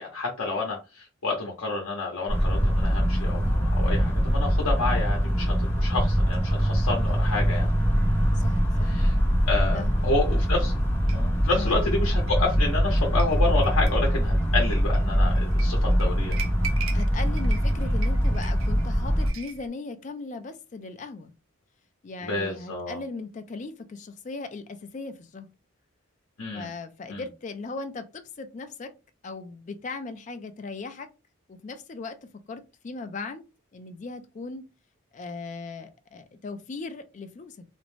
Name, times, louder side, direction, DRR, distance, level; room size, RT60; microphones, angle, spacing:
voice 1, 0.0-7.7 8.8-9.1 9.5-10.7 11.1-16.4 16.8-16.9 22.2-23.0 26.4-26.7 27.1-27.2, left 3 dB, 85° left, 0.7 m, -29 dB
sound 1, 2.3-19.3, equal, 10° left, 0.8 m, -23 dB
voice 2, 8.3-8.9 9.7-10.1 11.5-11.8 16.9-21.3 22.0-25.5 26.5-28.9 29.2-31.1 31.5-32.2 32.5-33.4 33.7-34.7 35.1-37.6, left 3 dB, 35° left, 0.3 m, -38 dB
sound 2, 11.1-19.7, right 5 dB, 70° right, 0.5 m, -41 dB
2.5 x 2.0 x 3.1 m
head